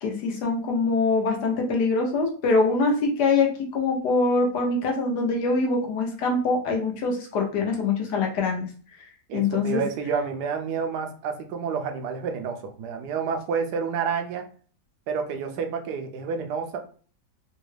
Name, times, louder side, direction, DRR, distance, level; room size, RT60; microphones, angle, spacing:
voice 1, 0.0-8.7 9.3-9.8, left 3 dB, 90° left, 1 dB, 1.5 m, -24 dB
voice 2, 9.3-14.5 15.1-16.8, right 6 dB, 85° right, 4 dB, 1.2 m, -29 dB
4.0 x 2.2 x 3.2 m, 0.42 s
omnidirectional pair, 1.7 m